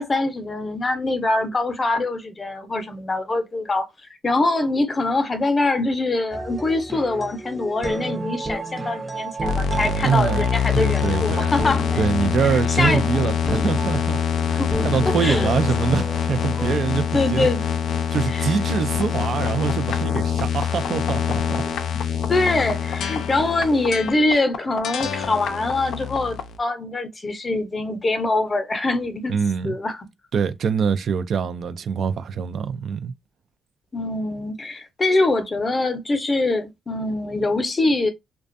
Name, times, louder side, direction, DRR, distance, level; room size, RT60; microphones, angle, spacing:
voice 1, 0.0-3.9 4.2-12.0 12.4-13.0 14.5-15.5 17.1-17.6 18.3-18.5 22.3-29.3 29.6-30.1 33.9-38.1, left 2 dB, 30° left, 0.7 m, -23 dB
sound 1, 6.3-16.7, right 2 dB, 20° right, 0.6 m, -32 dB
sound 2, 9.4-26.6, left 7 dB, 70° left, 0.4 m, -24 dB
voice 2, 10.0-10.5 10.7-11.5 12.0-14.2 14.8-17.5 18.1-21.6 29.3-29.8 30.3-33.1, right 7 dB, 60° right, 0.3 m, -24 dB
2.4 x 2.1 x 2.5 m
cardioid pair, 90°, 0 cm